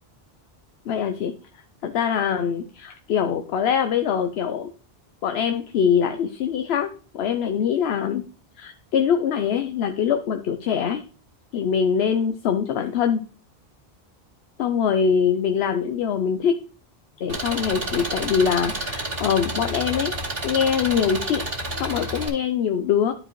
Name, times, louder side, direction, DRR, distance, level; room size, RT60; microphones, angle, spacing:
voice 1, 0.9-1.3 1.8-4.7 5.2-6.9 7.1-8.2 8.6-11.0 11.5-13.2 14.6-16.5 17.2-20.1 20.4-21.4 21.8-23.1, left 7 dB, 80° left, 7 dB, 0.9 m, -23 dB
Engine, 17.3-22.3, right 1 dB, 65° right, 2.6 m, -30 dB
11.5 x 4.9 x 3.1 m, 0.39 s
omnidirectional pair, 1.1 m